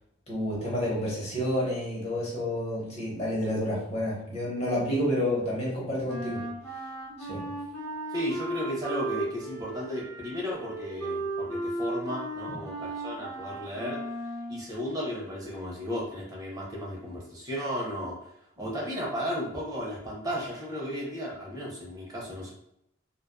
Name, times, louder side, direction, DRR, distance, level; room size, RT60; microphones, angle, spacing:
voice 1, 0.3-6.4 7.2-7.4 12.5-12.6, left 1 dB, 30° left, -5 dB, 0.8 m, -29 dB
Wind instrument woodwind instrument, 6.1-14.7, right 2 dB, 10° left, 1.3 m, -35 dB
voice 2, 8.1-14.0 14.5-18.2 18.6-22.5, equal, 20° right, -3 dB, 0.5 m, -34 dB
2.5 x 2.2 x 2.2 m, 0.76 s
head